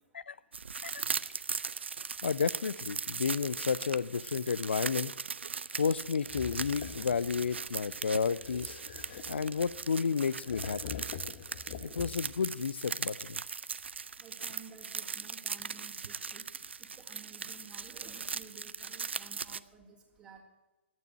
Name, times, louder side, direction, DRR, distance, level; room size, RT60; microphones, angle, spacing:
sound 1, 0.5-19.6, right 5 dB, 65° right, 0.5 m, -39 dB
voice 1, 2.2-5.1 5.7-8.8 9.3-11.0 11.8-13.4, left 6 dB, 65° left, 20 dB, 0.5 m, -32 dB
sound 2, 6.2-7.6 8.4-9.9 10.4-12.4, left 8 dB, 45° left, 1.1 m, -45 dB
voice 2, 7.6-8.0 9.2-9.4 14.2-16.5 17.0-20.4, right 5 dB, 15° right, -3 dB, 2.9 m, -54 dB
12.0 x 9.3 x 8.9 m, 1.1 s
figure-of-eight pair, 120°, 7 cm